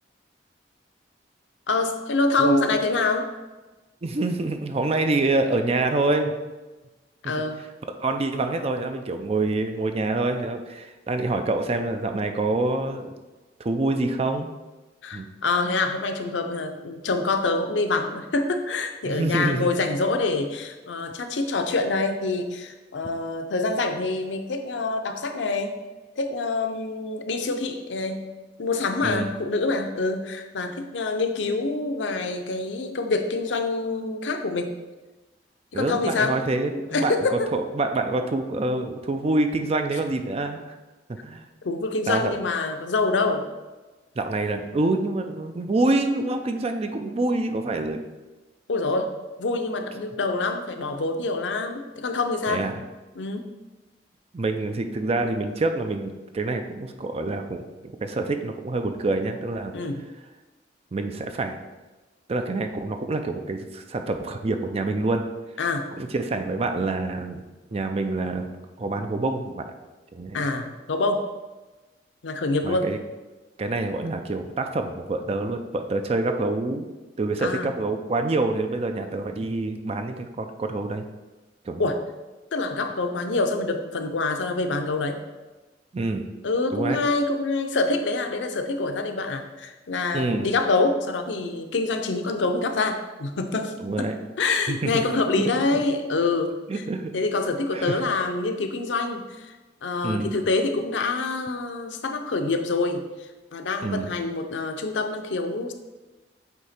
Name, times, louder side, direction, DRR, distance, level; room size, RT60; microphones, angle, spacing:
voice 1, 1.7-3.3 7.2-7.7 15.0-25.7 26.2-28.2 28.6-34.7 35.7-36.4 36.7-37.5 41.6-43.5 48.7-49.1 49.4-52.7 53.2-53.5 59.7-60.0 65.6-65.9 70.3-71.2 72.2-72.9 77.4-77.7 81.8-82.0 82.5-85.2 86.4-94.1 94.4-96.8 97.1-99.5 99.8-105.7, left 3 dB, 85° left, 6 dB, 0.6 m, -26 dB
voice 2, 4.0-6.4 7.2-7.3 8.0-13.1 13.6-14.5 15.1-15.3 19.0-19.7 29.0-29.3 35.7-37.1 37.5-40.6 41.1-41.4 42.1-42.4 44.2-48.0 52.5-52.8 54.3-59.7 60.9-61.6 62.3-65.2 66.0-67.4 67.7-68.5 68.8-69.7 70.1-70.4 72.6-73.0 73.6-76.9 77.2-81.0 81.6-81.9 85.9-86.2 86.7-87.0 90.1-90.5 93.8-94.1 94.7-95.8 96.7-97.1 97.7-98.0 100.0-100.3 103.8-104.1, right 2 dB, 35° right, 6 dB, 0.4 m, -26 dB
8.0 x 2.8 x 4.3 m, 1.2 s
head